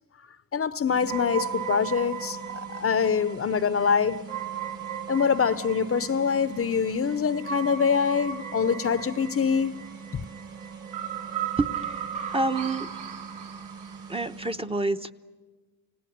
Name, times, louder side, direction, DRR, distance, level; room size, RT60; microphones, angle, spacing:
voice 1, 0.5-2.4 2.7-4.2 5.1-9.8, left 6 dB, 40° left, 0.8 m, -24 dB
sound 1, 0.9-14.5, right 5 dB, 90° right, 5.2 m, -44 dB
sound 2, 1.1-14.1, right 8 dB, 70° right, 4.0 m, -36 dB
voice 2, 12.3-12.9 14.1-15.1, right 2 dB, 15° right, 0.9 m, -27 dB
29.5 x 18.0 x 10.0 m
cardioid pair, 95°, 33 cm